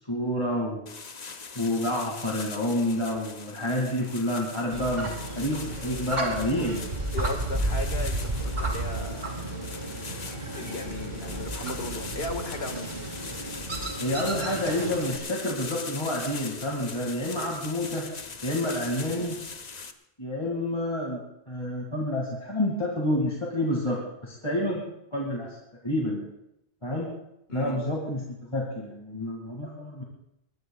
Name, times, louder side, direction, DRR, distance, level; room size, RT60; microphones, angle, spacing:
voice 1, 0.1-0.9 1.6-6.8 14.0-18.1 18.4-19.4 20.2-24.8 25.1-25.6 25.8-26.3 26.8-27.1 27.5-28.2 28.5-30.0, left 1 dB, 25° left, -3 dB, 2.3 m, -29 dB
sound 1, 0.9-19.9, left 4 dB, 45° left, 0.9 m, -41 dB
sound 2, 4.7-15.2, right 2 dB, 45° right, 2.9 m, -32 dB
voice 2, 7.1-9.3 10.3-12.9 19.0-19.3 27.5-27.8, left 2 dB, 70° left, 5 dB, 2.0 m, -36 dB
22.0 x 21.0 x 2.3 m, 0.81 s
omnidirectional pair, 1.1 m